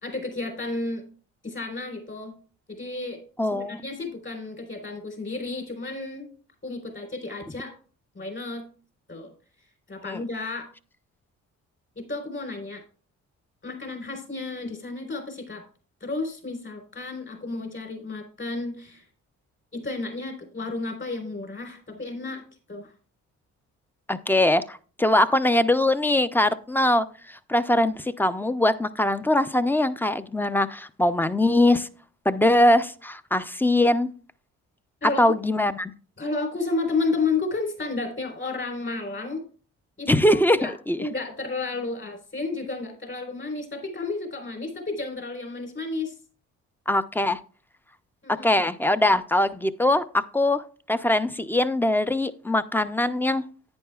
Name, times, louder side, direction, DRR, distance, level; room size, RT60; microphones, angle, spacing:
voice 1, 0.0-1.0 1.4-2.3 2.7-3.2 3.7-6.3 6.6-7.7 8.1-8.6 9.1-9.3 9.9-10.7 12.0-12.8 13.6-15.6 16.0-19.0 19.7-22.4 22.7-22.9 35.0-35.2 36.2-39.4 40.0-46.1 48.2-48.5, left 3 dB, 40° left, 3.9 m, -32 dB
voice 2, 3.4-3.8 10.1-10.2 24.1-31.9 32.3-34.1 35.2-35.9 40.1-41.1 46.9-47.4 48.4-50.6 50.9-53.4, left 1 dB, 5° left, 0.5 m, -22 dB
10.5 x 9.5 x 2.3 m
cardioid pair, 90°, 30 cm